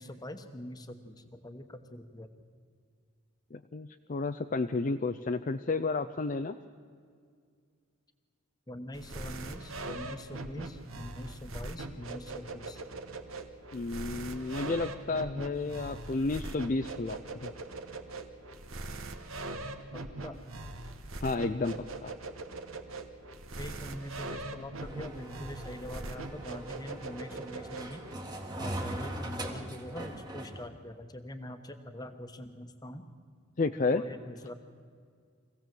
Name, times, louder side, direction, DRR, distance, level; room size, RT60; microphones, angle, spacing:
voice 1, 0.0-2.3 8.7-12.8 19.9-20.4 23.6-28.0 28.6-33.1 33.8-34.5, left 1 dB, 20° left, 8 dB, 1.1 m, -43 dB
voice 2, 3.5-6.6 13.7-17.5 21.2-21.8 22.0-22.1 33.6-34.0, left 3 dB, 35° left, 7 dB, 0.4 m, -31 dB
sound 1, 8.9-28.1, right 2 dB, 75° right, 1.5 m, -41 dB
sound 2, 24.8-30.7, right 1 dB, 20° right, 1.6 m, -41 dB
24.0 x 16.5 x 7.6 m, 2.1 s
head